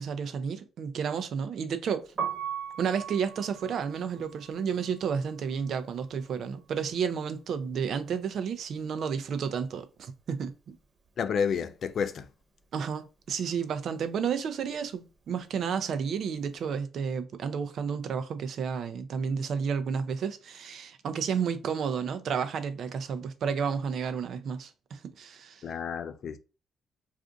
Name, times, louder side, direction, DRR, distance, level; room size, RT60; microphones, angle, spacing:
voice 1, 0.0-2.1 2.8-10.8 12.7-25.6, right 6 dB, 65° right, 0.4 m, -31 dB
Piano, 2.0-8.0 8.2-9.8 10.1-16.5, right 7 dB, 40° right, 1.0 m, -41 dB
voice 2, 11.2-12.3 25.6-26.4, left 6 dB, 60° left, 0.4 m, -30 dB
2.5 x 2.5 x 3.6 m
cardioid pair, 90°, 0 cm